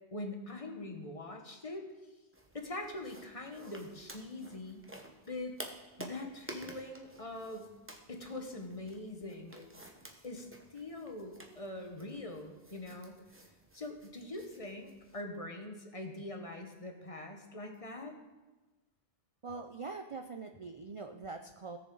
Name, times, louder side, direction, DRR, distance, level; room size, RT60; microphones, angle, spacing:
voice 1, 0.1-1.8 2.5-4.8 5.3-5.6 6.0-7.7 8.1-9.7 10.2-13.2 13.7-18.2, left 2 dB, 35° left, 3 dB, 1.3 m, -43 dB
sound 1, 2.3-15.2, right 1 dB, 10° right, 1.0 m, -52 dB
voice 2, 19.4-21.8, right 4 dB, 40° right, 5 dB, 0.5 m, -43 dB
17.5 x 6.8 x 3.9 m, 1.2 s
omnidirectional pair, 1.1 m